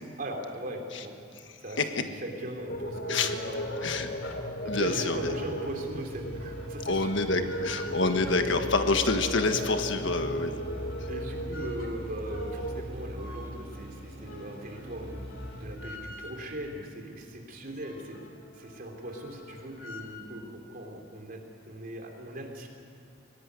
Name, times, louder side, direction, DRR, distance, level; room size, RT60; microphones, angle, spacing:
voice 1, 0.2-1.1 1.6-4.2 4.6-7.1 8.2-8.3 11.1-15.2 15.6-18.2 18.5-22.7, right 1 dB, 50° right, 2 dB, 3.5 m, -39 dB
sound 1, 2.7-12.8, equal, 50° left, 1.4 m, -36 dB
sound 2, 2.8-16.6 17.1-17.2 17.5-20.3, left 1 dB, 80° left, 2.7 m, -47 dB
sound 3, 3.8-15.9, equal, 30° left, 7.6 m, -42 dB
voice 2, 4.7-5.2 6.8-10.6, left 3 dB, 65° left, 7 dB, 1.5 m, -27 dB
22.0 x 18.0 x 9.6 m, 2.4 s
head